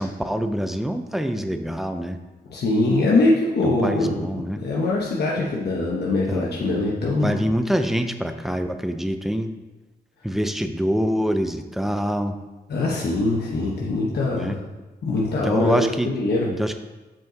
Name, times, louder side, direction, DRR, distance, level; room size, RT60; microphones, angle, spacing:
voice 1, 0.0-2.2 3.6-4.6 6.3-6.6 7.2-9.5 10.2-12.3 14.3-14.6 15.4-16.1 16.4-16.8, equal, ahead, 8 dB, 0.4 m, -25 dB
voice 2, 2.5-4.3 4.6-7.4 12.7-14.6 15.0-16.5, left 2 dB, 80° left, -4 dB, 1.0 m, -22 dB
7.2 x 5.2 x 3.9 m, 1.1 s
wide cardioid pair, 135°, 17 cm